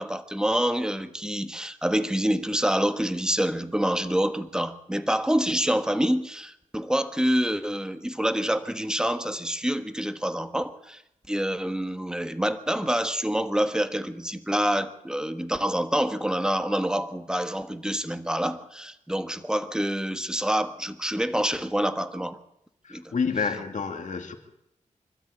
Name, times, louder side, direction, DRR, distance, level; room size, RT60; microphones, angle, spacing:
voice 1, 0.0-11.0 11.3-22.4 22.9-23.1, equal, 5° right, 1.4 m, -27 dB
voice 2, 22.8-24.3, left 5 dB, 70° left, 2.5 m, -29 dB
25.0 x 13.0 x 8.4 m
wide cardioid pair, 80°, 13 cm